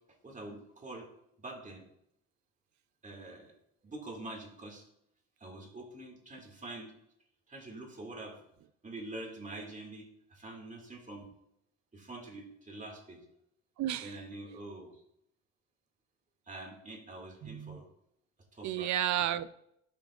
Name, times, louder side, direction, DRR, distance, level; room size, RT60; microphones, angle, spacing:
voice 1, 0.2-1.1 1.4-1.9 3.0-3.5 3.8-4.9 5.4-6.9 7.5-8.4 8.8-11.3 11.9-13.2 14.0-15.0 16.5-17.9 18.5-19.0, right 2 dB, 25° right, 1 dB, 2.0 m, -45 dB
voice 2, 13.8-14.1 17.4-17.8 18.6-19.5, right 12 dB, 70° right, 15 dB, 0.5 m, -32 dB
12.0 x 5.2 x 2.4 m, 0.75 s
cardioid pair, 90°, 30 cm